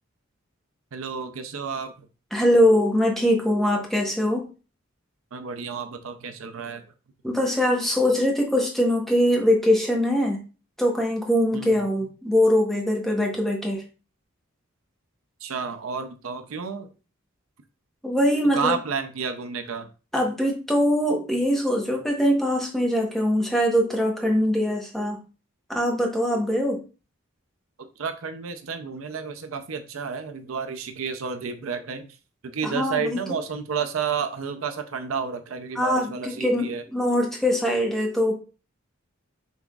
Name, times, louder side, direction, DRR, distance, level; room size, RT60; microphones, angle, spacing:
voice 1, 0.9-2.1 5.3-6.8 11.5-11.8 15.4-16.9 18.5-19.9 28.0-32.1 32.4-36.8, right 6 dB, 90° right, 8 dB, 0.5 m, -31 dB
voice 2, 2.3-4.5 7.2-10.4 10.8-13.8 18.0-18.7 20.1-25.2 25.7-26.8 32.6-33.2 35.7-38.3, equal, ahead, 0 dB, 1.0 m, -22 dB
5.6 x 3.5 x 2.3 m, 0.34 s
head